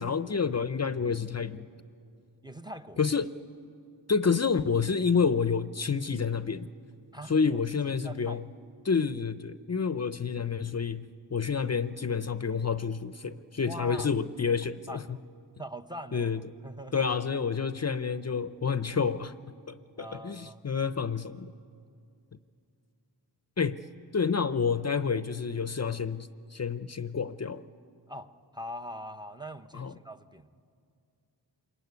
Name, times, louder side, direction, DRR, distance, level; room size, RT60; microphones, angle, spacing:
voice 1, 0.0-1.7 3.0-3.3 4.1-6.7 7.3-8.4 8.8-15.2 16.1-16.4 16.9-19.3 19.7-21.5 23.6-23.8 24.1-27.6 29.7-29.9, left 5 dB, 40° left, 13 dB, 0.6 m, -29 dB
voice 2, 2.4-3.0 7.1-7.6 7.9-8.4 13.6-14.1 14.9-15.2 15.6-17.1 20.0-20.6 28.1-30.5, equal, 10° right, 10 dB, 0.7 m, -42 dB
26.0 x 22.0 x 9.6 m, 2.4 s
wide cardioid pair, 105°, 42 cm